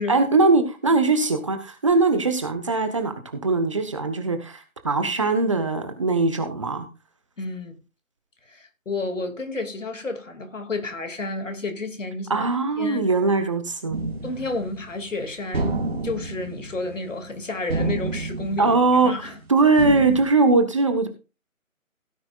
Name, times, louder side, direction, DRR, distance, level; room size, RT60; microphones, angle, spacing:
voice 1, 0.1-6.9 12.3-14.0 18.6-21.1, right 3 dB, 20° right, 1.2 m, -21 dB
voice 2, 7.4-7.8 8.5-12.5 12.8-13.1 14.2-15.8 16.0-19.4, left 2 dB, 60° left, 2.6 m, -31 dB
sound 1, 13.9-15.1 15.5-17.4 17.7-19.4 19.8-20.2, right 3 dB, 45° right, 2.9 m, -30 dB
17.0 x 9.3 x 2.5 m
figure-of-eight pair, 160°, 42 cm